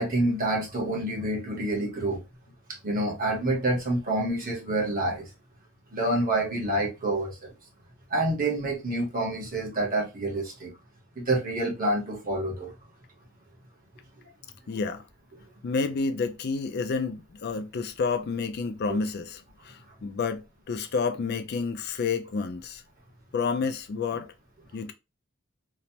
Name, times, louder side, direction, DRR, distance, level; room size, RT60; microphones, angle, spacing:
voice 1, 0.0-2.2 2.8-5.3 5.9-7.5 8.1-10.7 11.2-12.7 18.9-19.0, right 1 dB, 45° right, 1.1 m, -27 dB
voice 2, 14.7-15.0 15.6-22.8 23.3-24.3 24.7-24.9, left 4 dB, 55° left, 0.4 m, -30 dB
3.1 x 2.0 x 2.7 m
head